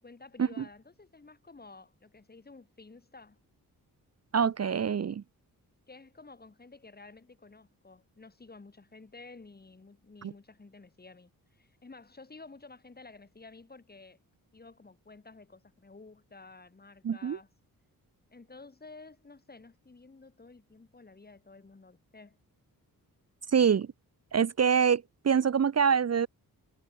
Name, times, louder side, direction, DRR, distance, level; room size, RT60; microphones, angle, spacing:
voice 1, 0.0-3.4 5.9-14.2 14.5-17.5 18.3-22.4, left 3 dB, 25° left, 4.4 m, -52 dB
voice 2, 4.3-5.2 10.2-10.3 17.0-17.4 23.5-23.9 24.3-26.3, right 7 dB, 45° right, 1.0 m, -25 dB
wide cardioid pair, 110°, 36 cm